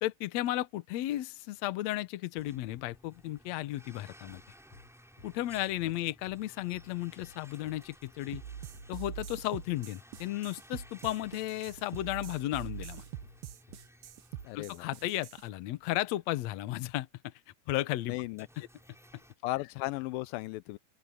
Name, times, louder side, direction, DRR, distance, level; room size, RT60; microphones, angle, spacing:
voice 1, 0.0-4.4 5.2-8.4 8.9-13.0 14.5-17.1 17.7-18.1, left 15 dB, 70° left, 1.7 m, -34 dB
sound 1, 2.3-15.4 15.8-16.0 16.8-16.9 17.9-19.3, equal, ahead, 7.5 m, -58 dB
sound 2, 4.2-4.5 4.7-4.9 5.2-5.4 5.8-6.0 6.3-6.5 6.7-6.9 7.2-7.4 7.6-7.9 8.3-8.5 8.7-8.9 9.2-9.4 9.7-9.9 10.1-10.3 10.7-10.9 11.2-11.4 11.7-11.9 12.1-12.3 12.6-12.8 13.2-13.4 13.7-13.9, left 2 dB, 45° left, 5.5 m, -55 dB
sound 3, 8.3-15.4, right 10 dB, 80° right, 3.0 m, -44 dB
voice 2, 14.4-14.9 18.1-18.5 19.4-20.8, left 19 dB, 85° left, 2.3 m, -35 dB
open air
omnidirectional pair, 4.1 m